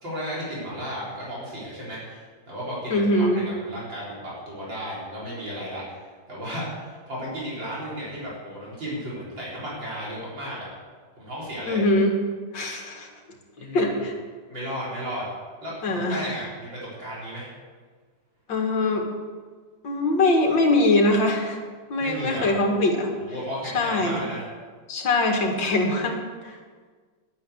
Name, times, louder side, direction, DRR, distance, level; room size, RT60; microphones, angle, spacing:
voice 1, 0.0-10.7 11.2-11.8 13.6-14.0 14.5-15.2 15.6-17.5 22.0-22.5 23.1-24.4, equal, 75° right, -7 dB, 4.8 m, -34 dB
voice 2, 2.9-3.4 11.7-12.1 12.5-13.1 13.7-14.1 15.8-16.3 18.5-19.1 19.8-21.6 21.9-23.1 23.7-24.2 24.9-26.6, left 2 dB, 75° left, 2 dB, 2.6 m, -22 dB
11.0 x 9.5 x 7.9 m, 1.5 s
omnidirectional pair, 2.0 m